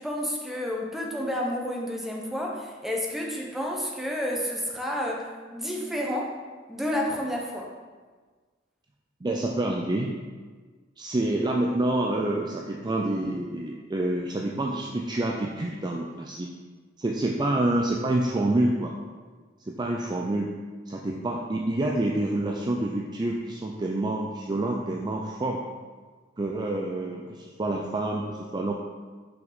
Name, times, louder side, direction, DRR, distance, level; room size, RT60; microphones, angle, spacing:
voice 1, 0.0-6.4 6.7-7.7, equal, ahead, -2 dB, 0.9 m, -30 dB
voice 2, 9.2-10.1 11.0-16.5 17.0-18.9 19.7-20.5 20.9-25.6 26.4-28.7, right 1 dB, 20° right, -1 dB, 0.4 m, -27 dB
5.7 x 5.3 x 3.9 m, 1.4 s
head